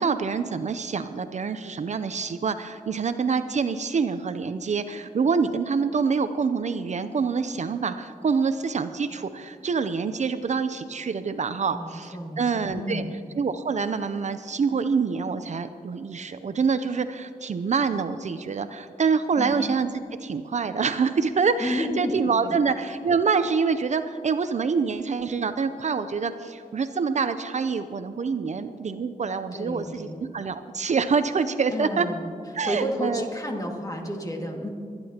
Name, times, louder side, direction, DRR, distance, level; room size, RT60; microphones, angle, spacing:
voice 1, 0.0-13.0 13.4-19.9 20.2-30.1 30.3-32.1 32.5-33.3, right 5 dB, 55° right, 11 dB, 0.5 m, -26 dB
voice 2, 11.7-13.1 19.4-19.5 21.6-22.1 22.4-22.6 29.5-30.2 31.7-32.3 32.6-34.7, equal, 25° left, 1 dB, 2.0 m, -31 dB
24.5 x 10.5 x 2.9 m, 2.4 s
cardioid pair, 80°, 15 cm